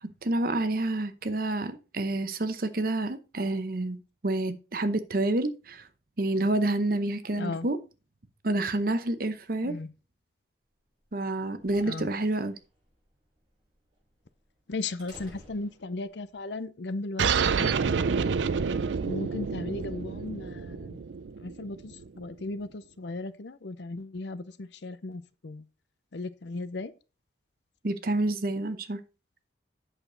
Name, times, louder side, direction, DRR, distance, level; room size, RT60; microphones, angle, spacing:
voice 1, 0.0-5.9 6.2-7.8 8.4-9.8 11.1-12.6 27.8-29.0, right 2 dB, 50° right, 0.8 m, -28 dB
voice 2, 7.4-7.7 9.6-9.9 11.8-12.1 14.7-17.8 19.0-21.0 21.4-25.6 26.1-26.9, left 2 dB, 70° left, 0.6 m, -36 dB
sound 1, 11.1-16.4, equal, 25° right, 5.5 m, -55 dB
sound 2, 17.2-22.2, right 6 dB, 75° right, 0.5 m, -28 dB
8.1 x 6.7 x 3.9 m
head